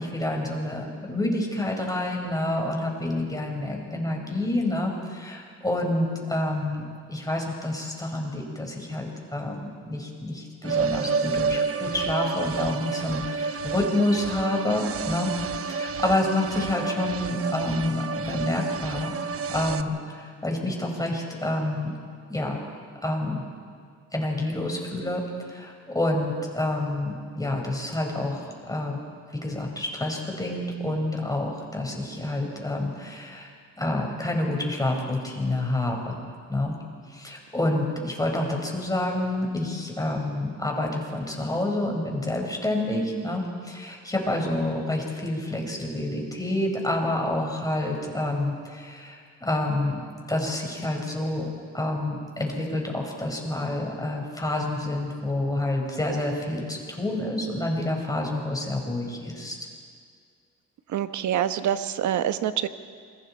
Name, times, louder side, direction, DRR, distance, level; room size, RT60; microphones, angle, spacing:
voice 1, 0.0-15.3 15.6-19.1 19.5-21.9 22.3-22.6 23.0-23.4 24.1-25.2 25.5-28.4 28.7-29.0 29.4-33.5 33.8-36.2 36.5-36.7 37.1-50.0 50.3-51.5 51.7-59.6, left 1 dB, 10° left, 0 dB, 5.1 m, -28 dB
sound 1, 10.6-19.8, right 5 dB, 50° right, 0.9 m, -30 dB
voice 2, 60.9-62.7, right 10 dB, 70° right, 11 dB, 1.1 m, -26 dB
28.0 x 22.0 x 4.4 m, 2.1 s
cardioid pair, 90°, 30 cm